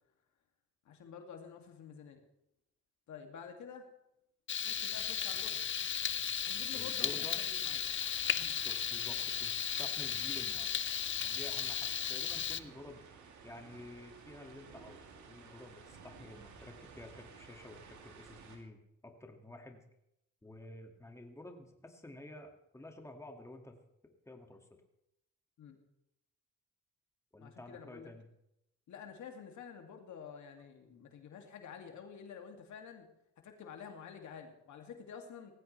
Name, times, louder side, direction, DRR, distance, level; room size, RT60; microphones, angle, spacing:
voice 1, 0.9-2.2 3.1-3.9 4.6-5.7 6.4-7.9 8.4-8.6 25.6-25.8 27.4-28.1 28.9-33.1 33.4-35.5, left 7 dB, 75° left, 3 dB, 2.4 m, -49 dB
Frying (food), 4.5-12.6, left 8 dB, 40° left, 0.7 m, -35 dB
voice 2, 6.7-7.4 8.6-10.8 11.2-13.1 13.4-19.8 20.4-23.8 24.0-24.8 27.3-28.3, left 2 dB, 10° left, 3 dB, 2.1 m, -51 dB
sound 1, 7.8-18.6, right 5 dB, 70° right, 2.9 m, -56 dB
18.5 x 15.5 x 3.3 m, 0.82 s
cardioid pair, 90°, 30 cm